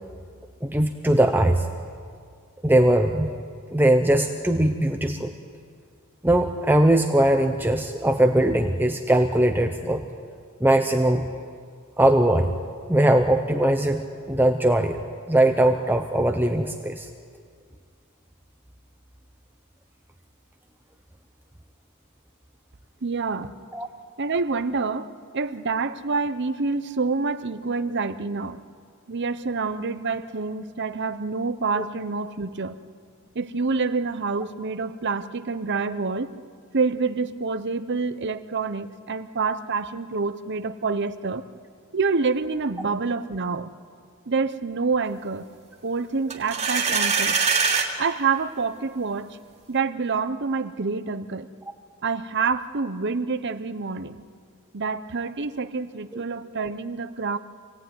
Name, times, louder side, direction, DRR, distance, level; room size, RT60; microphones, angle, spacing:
voice 1, 0.6-1.7 2.6-3.3 3.7-5.3 6.2-10.0 10.6-11.2 12.0-12.5 12.9-15.0 15.3-17.1 23.7-23.9 31.8-31.9 56.1-56.2, right 1 dB, 10° right, 4 dB, 0.9 m, -20 dB
voice 2, 23.0-23.5 24.2-28.6 29.1-32.8 33.3-36.3 36.7-41.4 41.9-43.7 44.3-45.5 45.8-47.4 48.0-49.4 49.7-51.5 52.0-54.2 54.7-57.4, right 4 dB, 55° right, 12 dB, 0.9 m, -27 dB
sound 1, 46.3-47.9, right 5 dB, 30° right, 2.8 m, -22 dB
26.0 x 18.0 x 9.6 m, 2.1 s
head